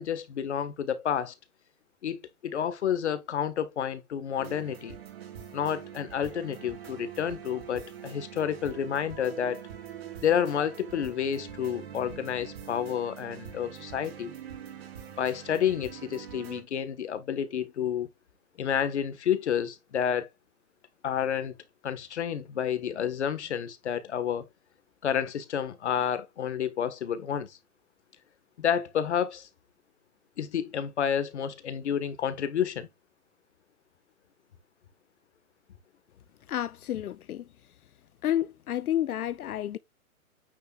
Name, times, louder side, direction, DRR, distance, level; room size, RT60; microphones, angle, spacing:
voice 1, 0.0-1.3 2.0-5.0 5.5-9.6 10.2-14.3 15.2-18.1 18.6-20.3 21.0-21.6 21.8-24.5 25.0-27.6 28.6-29.5 30.4-32.9, left 8 dB, 50° left, 1.5 m, -30 dB
sound 1, 4.4-16.6, right 9 dB, 45° right, 3.0 m, -44 dB
voice 2, 36.5-37.4 38.2-39.8, left 12 dB, 80° left, 0.6 m, -30 dB
9.3 x 6.5 x 2.4 m
hypercardioid pair, 165°, 43 cm